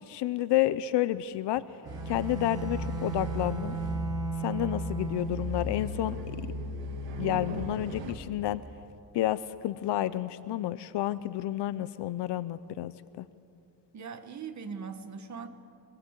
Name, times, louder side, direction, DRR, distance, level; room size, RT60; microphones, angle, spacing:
voice 1, 0.1-1.7 2.1-3.8 4.4-6.2 7.2-8.6 9.1-13.3, left 14 dB, 70° left, 15 dB, 0.7 m, -30 dB
Bowed string instrument, 1.8-5.6, right 6 dB, 10° right, 1.5 m, -37 dB
sound 1, 1.8-8.1, equal, 90° right, 2.8 m, -36 dB
voice 2, 13.9-15.5, right 6 dB, 40° right, 7 dB, 1.7 m, -40 dB
25.0 x 21.0 x 8.3 m, 2.4 s
cardioid pair, 155°, 43 cm